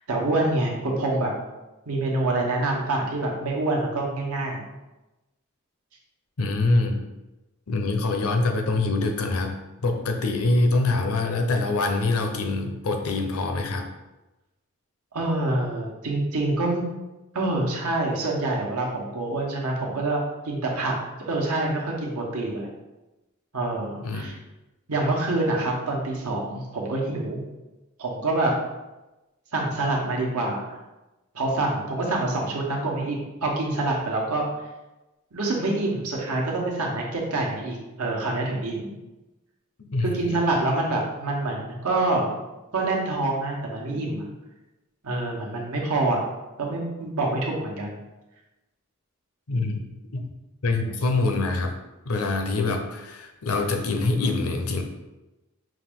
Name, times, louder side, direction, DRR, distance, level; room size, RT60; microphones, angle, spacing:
voice 1, 0.1-1.3 1.9-4.6 15.1-16.8 17.3-20.2 20.4-21.0 21.2-22.7 23.5-24.3 24.9-27.4 28.0-28.5 29.5-30.7 31.3-34.4 35.3-38.9 40.0-42.3 42.7-44.2 45.0-46.2 46.6-48.0, right 2 dB, 85° right, -1 dB, 1.1 m, -26 dB
voice 2, 6.4-7.0 7.7-9.6 9.8-13.9 24.0-24.3 39.8-40.3 49.5-49.8 50.1-50.2 50.6-51.8 52.1-54.8, left 2 dB, 80° left, 4 dB, 0.7 m, -24 dB
5.6 x 2.5 x 3.6 m, 1.0 s
head